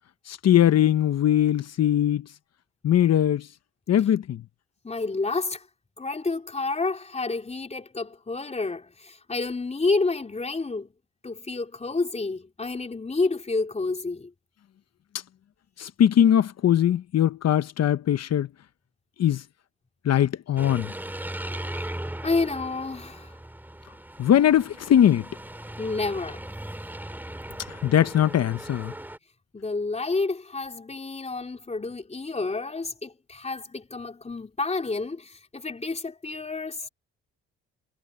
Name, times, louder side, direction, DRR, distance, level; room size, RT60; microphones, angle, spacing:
voice 1, 0.3-2.3 2.8-3.5 3.9-4.4 15.8-18.5 19.2-19.4 20.0-20.9 24.2-25.2 27.7-28.9, left 10 dB, 55° left, 1.0 m, -21 dB
voice 2, 4.8-5.6 6.0-10.9 11.2-14.3 22.2-23.3 25.8-26.4 29.5-36.9, left 3 dB, 20° left, 3.6 m, -29 dB
sound 1, 20.6-29.2, right 1 dB, 5° right, 2.5 m, -38 dB
cardioid pair, 90°, 30 cm